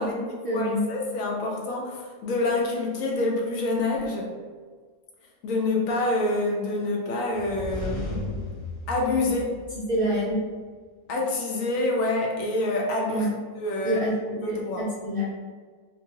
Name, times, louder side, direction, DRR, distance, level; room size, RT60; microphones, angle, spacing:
voice 1, 0.0-0.9 9.9-10.4 13.1-13.3 13.8-15.2, equal, 70° right, -6 dB, 0.5 m, -27 dB
voice 2, 0.5-4.3 5.4-8.5 8.9-9.5 11.1-13.3 13.5-14.0 14.4-14.9, left 2 dB, 70° left, -1 dB, 1.0 m, -27 dB
sound 1, 7.3-10.3, left 1 dB, 50° left, 0.3 m, -35 dB
3.6 x 2.0 x 2.8 m, 1.5 s
omnidirectional pair, 1.5 m